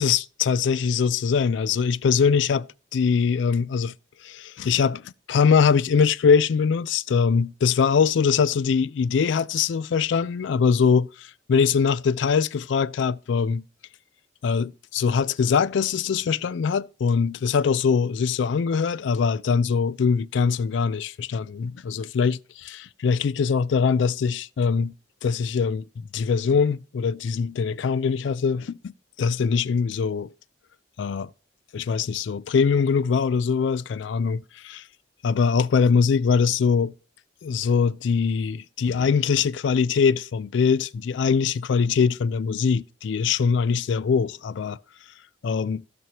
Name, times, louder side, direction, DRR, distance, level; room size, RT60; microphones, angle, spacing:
voice 1, 0.0-2.7 2.9-3.9 4.2-13.6 14.4-24.9 25.2-28.9 29.2-30.3 31.0-31.3 31.7-34.4 34.7-34.8 35.2-36.9 37.4-44.8 45.4-45.8, left 6 dB, 70° left, 0.3 m, -22 dB
15.5 x 6.0 x 2.9 m
head